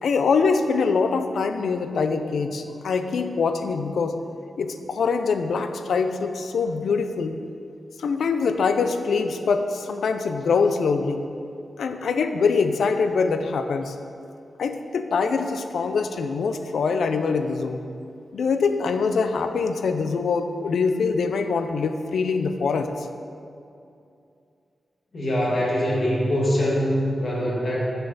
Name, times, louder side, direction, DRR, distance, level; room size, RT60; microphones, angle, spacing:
voice 1, 0.0-4.2 4.6-7.4 8.0-11.3 11.8-14.0 14.6-17.8 18.3-22.9, left 5 dB, 75° left, 8 dB, 0.4 m, -24 dB
voice 2, 25.1-27.8, equal, 45° left, -5 dB, 1.5 m, -23 dB
6.8 x 5.7 x 3.9 m, 2.5 s
wide cardioid pair, 175°, 0 cm